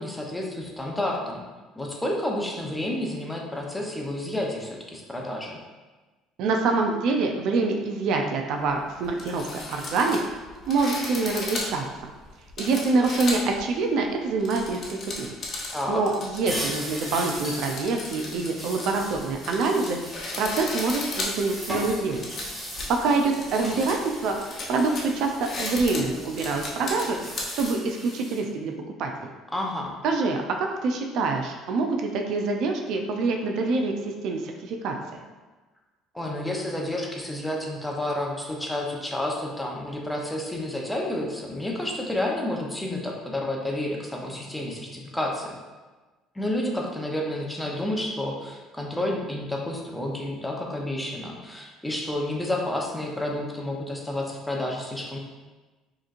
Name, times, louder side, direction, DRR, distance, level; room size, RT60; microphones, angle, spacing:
voice 1, 0.0-1.4 1.8-5.6 15.7-16.0 29.5-29.9 36.1-45.6 46.3-55.2, left 1 dB, 5° left, -1 dB, 0.7 m, -30 dB
voice 2, 6.4-10.2 10.7-11.9 12.6-15.4 15.9-20.0 20.4-22.3 23.0-24.3 24.7-27.2 27.6-28.7 29.0-29.3 30.0-33.9 34.2-35.0, right 3 dB, 65° right, 3 dB, 0.5 m, -25 dB
sound 1, 8.6-8.7 9.0-13.6 14.2-27.7, left 2 dB, 45° left, 0.8 m, -35 dB
sound 2, 16.5-28.4, equal, 15° right, 1.3 m, -38 dB
4.9 x 2.9 x 2.5 m, 1.2 s
cardioid pair, 105°, 0 cm